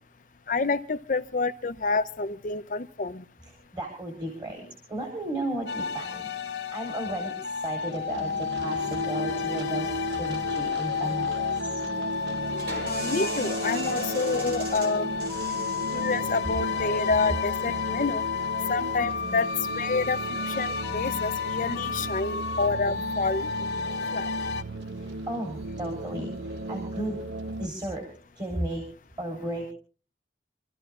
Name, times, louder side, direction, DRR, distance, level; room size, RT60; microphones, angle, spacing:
voice 1, 0.5-3.2 12.8-15.1 15.9-18.2 18.7-20.2 20.5-23.5 24.1-24.3, left 4 dB, 45° left, 0.6 m, -28 dB
voice 2, 3.4-11.8 24.9-27.2 27.6-29.7, right 1 dB, 25° right, 3.6 m, -35 dB
sound 1, 5.7-24.6, left 6 dB, 80° left, 1.0 m, -32 dB
sound 2, 7.9-27.7, right 1 dB, 85° right, 0.8 m, -36 dB
sound 3, 12.5-18.0, right 1 dB, 65° right, 5.1 m, -39 dB
27.5 x 13.5 x 2.4 m
head